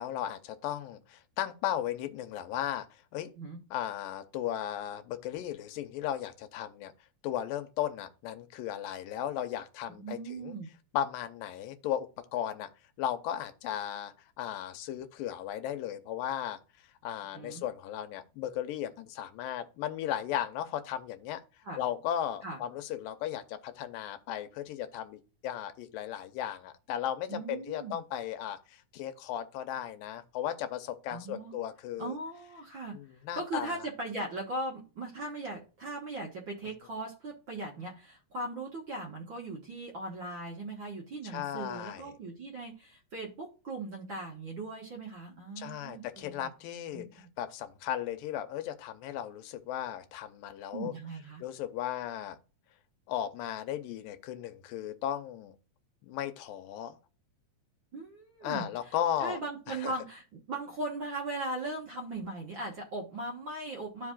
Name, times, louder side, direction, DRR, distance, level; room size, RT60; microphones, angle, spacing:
voice 1, 0.0-2.9 3.1-3.3 3.7-6.9 7.2-10.6 10.9-12.7 13.0-16.6 17.0-21.4 21.8-32.2 32.9-33.8 41.2-42.1 45.6-50.9 51.4-52.4 53.1-55.6 56.0-57.0 58.4-59.4 59.7-59.9, left 10 dB, 85° left, 2.5 m, -36 dB
voice 2, 9.9-10.7 17.3-17.6 21.6-21.8 22.4-22.6 27.3-28.0 31.1-31.5 32.0-33.0 33.3-46.5 46.9-47.3 50.7-51.4 57.9-58.9 59.2-64.1, right 2 dB, 45° right, 1.7 m, -39 dB
13.0 x 5.2 x 2.4 m
omnidirectional pair, 4.0 m